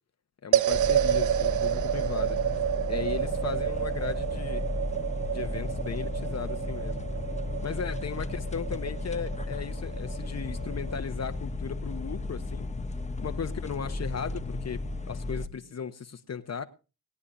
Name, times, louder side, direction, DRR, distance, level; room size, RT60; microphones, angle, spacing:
voice 1, 0.4-2.4 2.9-4.7 5.3-7.0 7.6-12.7 13.2-14.8 15.1-16.6, left 6 dB, 45° left, 1.3 m, -36 dB
sound 1, 0.5-11.0, right 10 dB, 55° right, 0.5 m, -30 dB
sound 2, 0.7-15.5, left 2 dB, 20° left, 1.0 m, -34 dB
sound 3, 1.5-15.7, right 4 dB, 80° right, 2.5 m, -51 dB
20.5 x 9.6 x 2.7 m
supercardioid pair, 60°, 37 cm